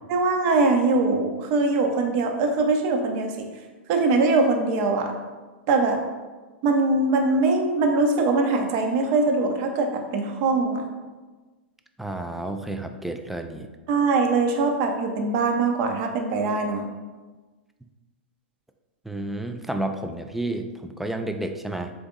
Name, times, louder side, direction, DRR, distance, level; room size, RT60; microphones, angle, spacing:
voice 1, 0.1-3.5 3.9-5.1 5.7-6.0 6.6-10.9 13.9-16.9, right 3 dB, 45° right, 3 dB, 0.7 m, -22 dB
voice 2, 12.0-13.7 19.0-21.9, right 1 dB, 5° right, 6 dB, 0.3 m, -31 dB
3.9 x 3.4 x 3.7 m, 1.3 s
hypercardioid pair, 105°, 6 cm